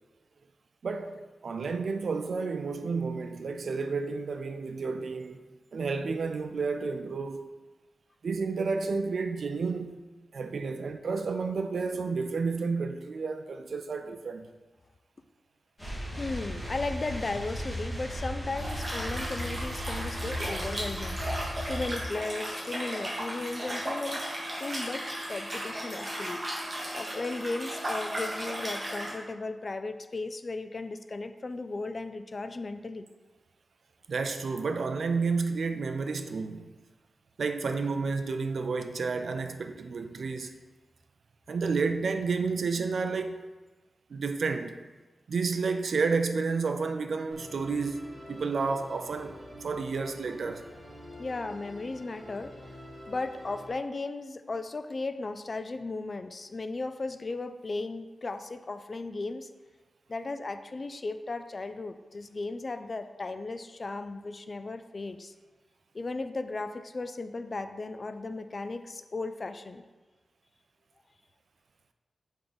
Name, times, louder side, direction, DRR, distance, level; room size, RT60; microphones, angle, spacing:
voice 1, 0.8-7.4 8.2-10.0 10.3-14.5 34.1-36.7 37.4-40.5 41.5-43.5 44.1-44.7 45.3-50.6, right 4 dB, 65° right, 0.4 m, -31 dB
sound 1, 15.8-22.0, equal, 5° left, 1.9 m, -36 dB
voice 2, 16.2-21.2 21.7-24.2 24.6-26.4 26.9-33.1 51.2-52.5 53.1-59.5 60.1-65.3 65.9-69.8, left 3 dB, 35° left, 0.3 m, -36 dB
Liquid, 18.6-29.1, right 1 dB, 30° right, 1.5 m, -35 dB
Musical instrument, 47.3-53.7, equal, 10° right, 1.3 m, -47 dB
6.6 x 3.6 x 4.0 m
wide cardioid pair, 145°, 0 cm